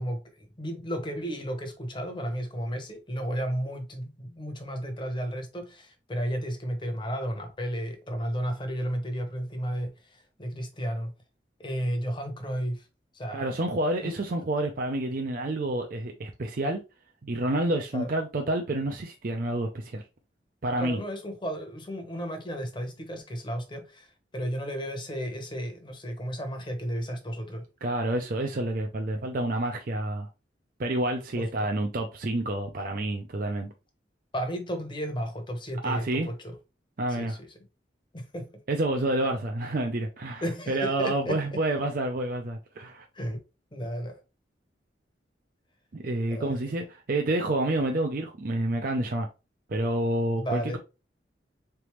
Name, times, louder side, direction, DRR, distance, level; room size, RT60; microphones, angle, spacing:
voice 1, 0.0-11.1 11.6-12.9 13.1-13.5 14.0-14.2 17.9-18.1 20.8-27.7 31.4-31.7 34.3-36.6 37.1-37.6 38.1-38.6 40.4-41.6 43.1-43.4 43.7-44.2 46.3-46.7 50.3-50.8, equal, 25° left, 1.0 m, -33 dB
voice 2, 13.3-16.8 17.2-20.0 20.6-21.0 27.8-30.3 30.8-33.7 35.8-36.3 37.0-37.4 38.7-43.0 45.9-49.3 49.7-50.8, right 1 dB, 50° right, 0.5 m, -29 dB
4.0 x 3.4 x 3.1 m
head